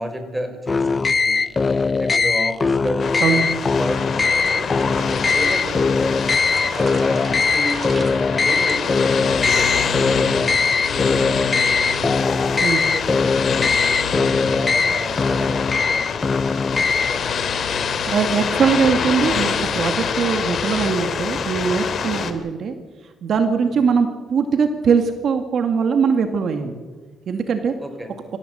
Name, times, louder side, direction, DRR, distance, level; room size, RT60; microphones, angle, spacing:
voice 1, 0.0-6.2 6.7-17.3 22.1-22.4 23.6-23.7 27.8-28.1, equal, 10° right, 6 dB, 5.1 m, -33 dB
sound 1, 0.7-17.3, left 4 dB, 30° left, 0.6 m, -20 dB
sound 2, 3.0-22.3, left 6 dB, 55° left, 2.4 m, -25 dB
sound 3, 3.4-11.0, right 4 dB, 35° right, 2.5 m, -39 dB
voice 2, 18.0-22.7 23.2-26.7 27.3-27.7, right 6 dB, 60° right, 7 dB, 2.1 m, -21 dB
26.0 x 15.5 x 8.1 m, 1.4 s
cardioid pair, 90°, 0 cm